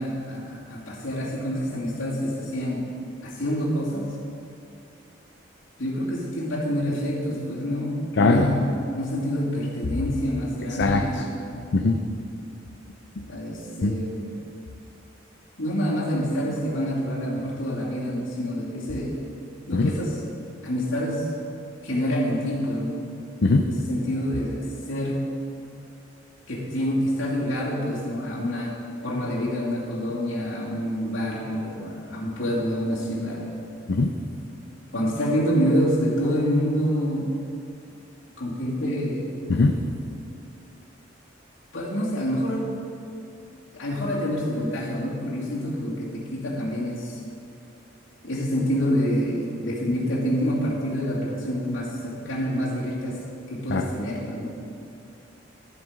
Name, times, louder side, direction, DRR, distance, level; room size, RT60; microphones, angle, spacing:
voice 1, 0.0-2.9 3.2-4.1 5.8-11.7 13.2-14.3 15.6-19.2 19.7-20.2 20.6-21.3 21.8-23.1 23.7-25.3 26.5-28.7 29.0-33.4 34.9-37.3 38.4-39.5 41.7-42.7 43.7-47.2 48.2-53.1 53.5-54.5, equal, 85° left, -7 dB, 2.6 m, -27 dB
voice 2, 8.2-8.5 10.8-11.0 11.7-12.0 13.8-13.9 19.7-19.9 23.4-23.7 33.9-34.2 39.5-39.9 53.7-53.8, left 3 dB, 65° left, 3 dB, 0.6 m, -20 dB
12.5 x 7.6 x 5.1 m, 2.6 s
head